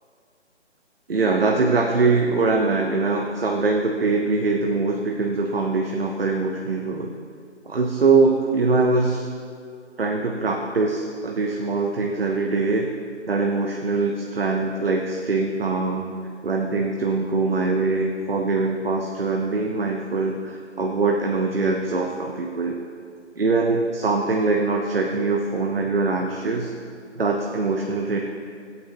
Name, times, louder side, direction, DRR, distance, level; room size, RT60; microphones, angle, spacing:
voice 1, 1.1-7.1 7.7-9.2 10.0-12.9 13.3-16.1 16.4-22.8 23.4-26.7 27.2-28.2, right 3 dB, 55° right, 1 dB, 0.9 m, -22 dB
17.0 x 8.4 x 2.8 m, 2.3 s
hypercardioid pair, 180°, 36 cm